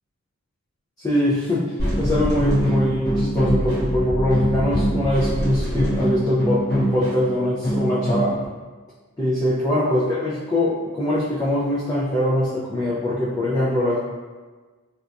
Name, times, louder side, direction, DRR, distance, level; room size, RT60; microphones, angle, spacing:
voice 1, 1.0-8.4 9.2-14.0, left 1 dB, 15° left, -8 dB, 0.3 m, -22 dB
sound 1, 1.8-8.5, equal, 50° left, 0.8 m, -23 dB
3.9 x 2.2 x 2.5 m, 1.4 s
head